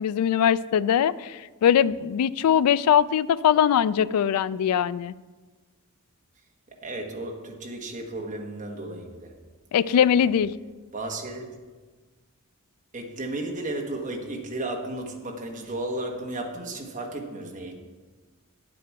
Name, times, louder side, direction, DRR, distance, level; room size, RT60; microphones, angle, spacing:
voice 1, 0.0-5.1 9.7-10.5, left 8 dB, 90° left, 17 dB, 0.3 m, -21 dB
voice 2, 6.7-9.4 9.8-10.3 10.9-11.6 12.9-17.8, right 2 dB, 35° right, 1 dB, 1.3 m, -34 dB
10.0 x 7.8 x 4.6 m, 1.4 s
head